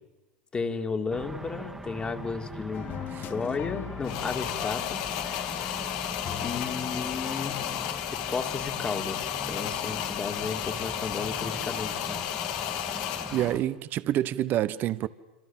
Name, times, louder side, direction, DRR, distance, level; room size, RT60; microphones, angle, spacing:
voice 1, 0.5-2.9 3.2-5.0 6.4-7.7 8.1-12.2, left 4 dB, 20° left, 3.1 m, -33 dB
sound 1, 1.1-13.6, right 2 dB, 5° right, 2.1 m, -41 dB
sound 2, 2.7-8.0, left 11 dB, 40° left, 1.5 m, -41 dB
sound 3, 4.0-13.6, left 11 dB, 60° left, 2.8 m, -33 dB
voice 2, 13.3-15.1, right 13 dB, 45° right, 1.3 m, -27 dB
27.0 x 26.5 x 7.7 m
hypercardioid pair, 100°, 5 cm